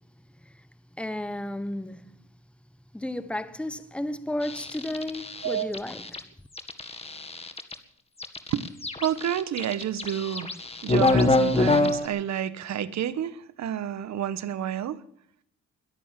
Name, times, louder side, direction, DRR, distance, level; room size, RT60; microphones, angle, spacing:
voice 1, 1.0-2.0 2.9-6.3, left 1 dB, 5° left, 1.2 m, -33 dB
sound 1, 4.4-6.2 6.6-7.7 8.2-12.1, left 2 dB, 20° left, 1.8 m, -26 dB
voice 2, 9.0-10.5 10.8-15.0, right 10 dB, 65° right, 1.2 m, -29 dB
22.0 x 8.7 x 7.5 m
cardioid pair, 90°, 30 cm